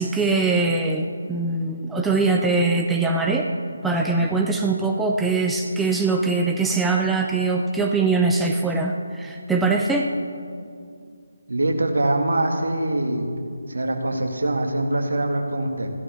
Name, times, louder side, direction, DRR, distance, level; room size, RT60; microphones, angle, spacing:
voice 1, 0.0-3.5 3.8-10.1, right 3 dB, 5° right, 1 dB, 0.6 m, -22 dB
voice 2, 11.5-13.3 13.7-15.9, right 1 dB, 60° right, 3 dB, 2.2 m, -23 dB
15.5 x 12.5 x 6.6 m, 2.3 s
figure-of-eight pair, 150°, 0 cm